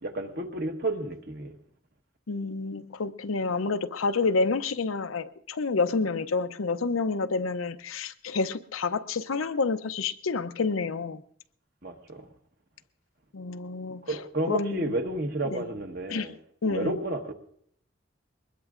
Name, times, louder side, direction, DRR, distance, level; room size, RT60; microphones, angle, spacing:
voice 1, 0.0-1.5 11.8-12.3 14.0-16.4 16.6-17.3, right 2 dB, 50° right, 4 dB, 1.3 m, -31 dB
voice 2, 2.3-11.2 13.3-14.2 14.5-14.9 15.4-15.6 16.1-16.3 16.6-16.9, left 4 dB, 90° left, 10 dB, 0.6 m, -29 dB
22.0 x 20.5 x 2.5 m, 0.66 s
head